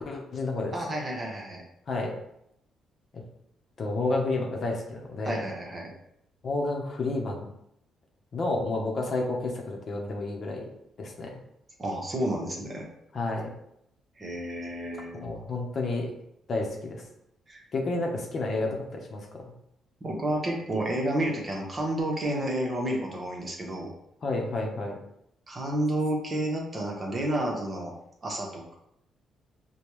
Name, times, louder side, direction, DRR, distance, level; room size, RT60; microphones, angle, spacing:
voice 1, 0.1-0.7 1.9-2.2 3.8-5.4 6.4-7.5 8.3-10.7 11.0-11.3 13.1-13.5 15.2-16.1 16.5-17.0 17.7-19.4 24.2-25.0, left 2 dB, 50° left, 1 dB, 0.8 m, -30 dB
voice 2, 0.7-1.6 5.2-5.9 11.8-12.8 14.2-15.3 17.5-17.6 20.0-23.9 25.5-27.9 28.2-28.8, right 1 dB, 30° right, -1 dB, 1.0 m, -30 dB
5.2 x 2.3 x 3.1 m, 0.77 s
cardioid pair, 90°, 0 cm